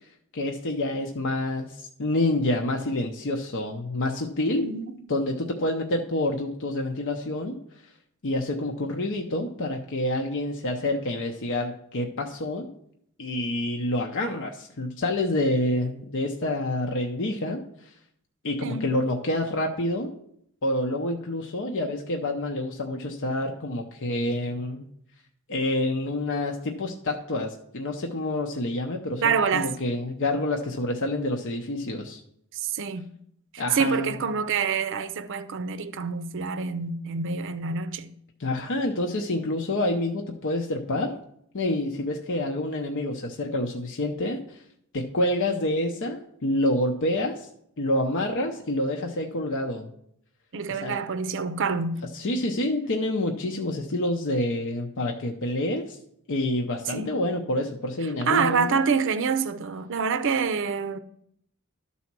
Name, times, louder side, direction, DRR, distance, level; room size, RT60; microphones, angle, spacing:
voice 1, 0.3-4.7 5.1-7.6 8.2-12.7 13.2-17.9 18.4-20.1 20.6-24.9 25.5-32.2 33.6-34.2 38.4-41.1 41.5-44.6 44.9-47.5 47.8-49.9 50.7-51.0 52.1-56.0 56.3-58.8, left 1 dB, 60° left, 0.7 m, -28 dB
voice 2, 4.6-4.9 18.6-18.9 29.2-29.7 32.5-33.1 33.5-38.1 50.5-52.0 56.9-57.1 58.3-61.0, right 5 dB, 60° right, 0.5 m, -26 dB
12.5 x 4.2 x 6.0 m
head